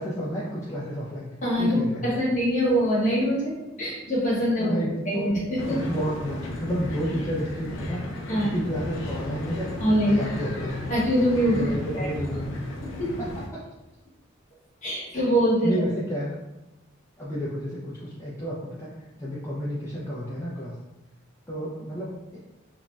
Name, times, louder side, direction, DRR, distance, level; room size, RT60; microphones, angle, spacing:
voice 1, 0.0-1.3 1.6-2.2 4.6-5.3 5.7-8.0 8.3-9.7 10.0-10.8 11.5-12.7 13.2-13.3 15.6-16.4 17.2-18.9 19.2-20.7 21.5-22.4, equal, 15° left, -8 dB, 0.4 m, -31 dB
voice 2, 1.4-4.7 5.1-5.6 8.3-8.5 9.8-10.2 10.9-11.6 11.9-12.1 13.0-13.1 14.8-15.8, equal, 40° left, -6 dB, 1.0 m, -23 dB
sound 1, 5.6-13.5, left 1 dB, 70° left, 0.4 m, -35 dB
2.5 x 2.1 x 3.1 m, 0.99 s
head